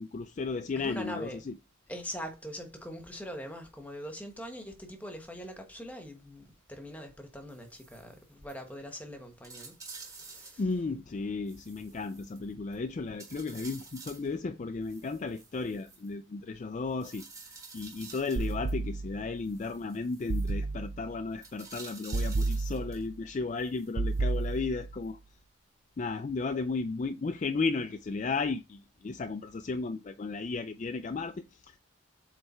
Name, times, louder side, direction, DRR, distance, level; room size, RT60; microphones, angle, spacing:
voice 1, 0.0-1.6 10.6-25.2 26.0-31.8, left 4 dB, 35° left, 0.3 m, -34 dB
voice 2, 0.8-1.4 1.9-10.6, equal, 5° left, 1.1 m, -42 dB
sound 1, 7.5-8.2 8.5-8.6 9.0-9.1 9.4-10.8 11.5-12.8 13.2-14.3 14.8-16.1 17.0-18.8 19.5-20.5 21.4-23.1 23.6-24.6 25.0-25.1, right 4 dB, 15° right, 1.4 m, -50 dB
sound 2, 18.4-19.4 20.3-21.2 22.1-23.2 24.0-25.0, right 3 dB, 55° right, 0.5 m, -32 dB
7.8 x 3.3 x 4.3 m
head